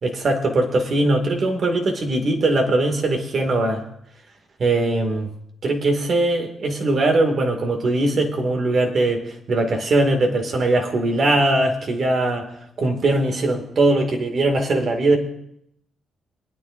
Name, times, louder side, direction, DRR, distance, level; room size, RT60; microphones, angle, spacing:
voice 1, 0.0-3.8 4.6-5.3 5.6-12.5 12.8-15.2, right 2 dB, 55° right, 3 dB, 2.3 m, -20 dB
23.0 x 9.7 x 2.7 m, 0.75 s
supercardioid pair, 50°, 0 cm